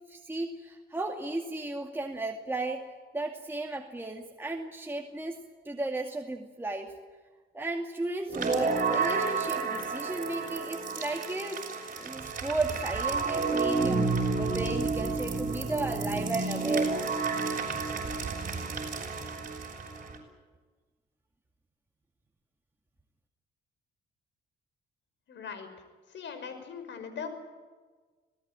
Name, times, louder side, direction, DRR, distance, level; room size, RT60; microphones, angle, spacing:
voice 1, 0.1-2.8 3.1-5.4 5.6-6.9 7.5-11.6 12.0-16.9, right 2 dB, 10° right, 1 dB, 2.3 m, -34 dB
sound 1, 8.3-20.2, right 4 dB, 40° right, 6.9 m, -30 dB
voice 2, 25.3-25.7 26.1-27.3, left 6 dB, 65° left, 9 dB, 5.6 m, -40 dB
26.0 x 18.5 x 9.1 m, 1.4 s
cardioid pair, 90°, 20 cm